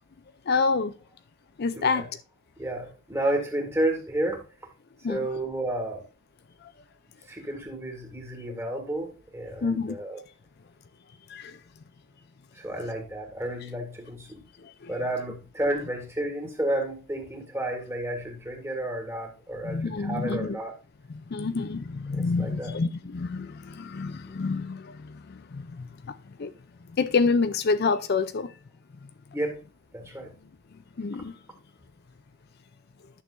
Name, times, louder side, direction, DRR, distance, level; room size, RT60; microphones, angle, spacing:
voice 1, 0.5-0.9 1.6-2.1 5.0-5.3 6.6-6.7 9.6-10.0 11.3-11.6 14.6-14.9 19.6-20.6 21.1-26.5 27.0-28.5 29.0-29.1 31.0-31.4, left 4 dB, 50° left, 0.5 m, -28 dB
voice 2, 2.6-4.4 5.1-6.0 7.3-9.1 9.3-10.2 12.5-14.4 14.9-20.7 22.1-22.8 29.3-29.6 29.9-30.3, right 1 dB, 15° right, 2.0 m, -31 dB
11.0 x 6.5 x 2.6 m
head